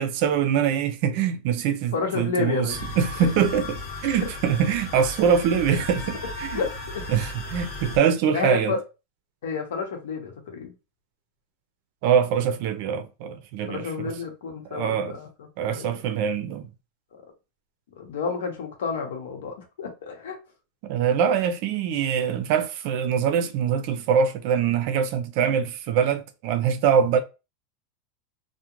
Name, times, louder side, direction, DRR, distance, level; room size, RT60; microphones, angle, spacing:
voice 1, 0.0-6.6 7.1-8.8 12.0-14.1 14.7-15.2 15.6-16.7 20.8-27.2, right 7 dB, 50° right, 0.4 m, -23 dB
voice 2, 1.9-2.8 4.2-4.3 6.5-7.1 8.3-8.8 9.4-10.7 13.7-15.9 18.0-20.4, left 5 dB, 90° left, 0.9 m, -30 dB
sound 1, 2.7-8.0, left 2 dB, 55° left, 1.0 m, -35 dB
2.4 x 2.1 x 2.9 m
supercardioid pair, 160°, 0 cm